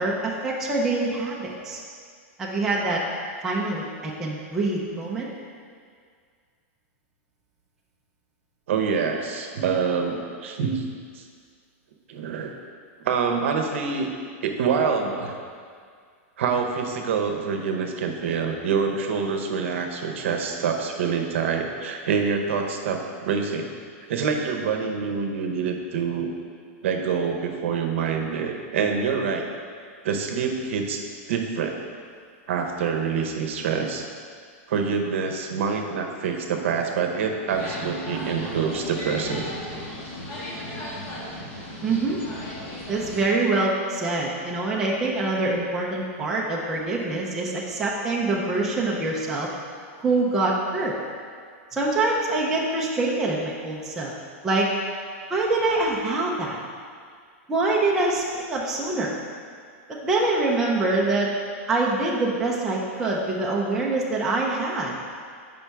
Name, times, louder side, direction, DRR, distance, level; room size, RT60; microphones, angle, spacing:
voice 1, 0.0-1.8 2.4-3.0 3.4-5.3 41.8-42.2 42.9-49.5 50.0-50.9 51.7-54.1 54.4-54.7 55.3-56.6 57.5-59.1 60.0-61.3 61.7-65.0, right 2 dB, 5° right, -4 dB, 0.4 m, -25 dB
voice 2, 8.7-10.9 11.1-11.2 12.1-12.5 13.0-14.1 14.4-15.4 16.4-23.7 24.1-26.3 26.8-29.5 30.0-31.0 31.3-31.8 32.5-34.0 34.7-39.5, right 6 dB, 60° right, 3 dB, 0.8 m, -26 dB
sound 1, 37.5-43.2, left 1 dB, 35° left, 1.4 m, -35 dB
7.2 x 5.3 x 3.4 m, 2.1 s
supercardioid pair, 180°, 8 cm